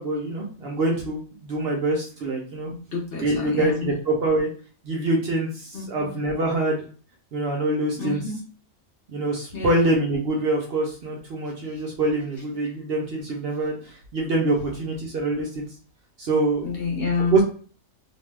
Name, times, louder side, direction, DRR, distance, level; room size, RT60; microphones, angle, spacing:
voice 1, 0.0-2.7 3.2-4.5 4.8-6.8 7.3-8.2 9.1-15.7 16.2-16.6 17.3-17.5, right 2 dB, 60° right, -1 dB, 0.7 m, -25 dB
voice 2, 2.7-3.9 5.7-6.1 8.0-8.4 9.5-9.8 16.6-17.4, left 4 dB, 55° left, -3 dB, 0.9 m, -29 dB
2.6 x 2.2 x 3.2 m, 0.42 s
omnidirectional pair, 1.4 m